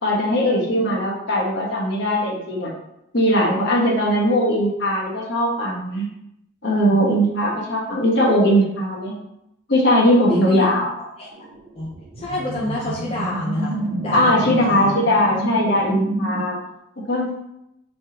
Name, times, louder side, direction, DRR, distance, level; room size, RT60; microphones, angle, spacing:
voice 1, 0.0-2.7 3.1-6.1 6.6-9.1 9.7-10.9 14.1-16.6 17.1-17.3, equal, 55° left, -3 dB, 1.2 m, -19 dB
voice 2, 10.3-10.6 11.2-11.3 11.8-11.9 12.2-15.0 16.2-16.3, left 1 dB, 30° left, -5 dB, 0.6 m, -28 dB
sound 1, 11.3-16.5, right 1 dB, 45° right, 0.5 m, -29 dB
5.2 x 3.4 x 2.9 m, 0.82 s
head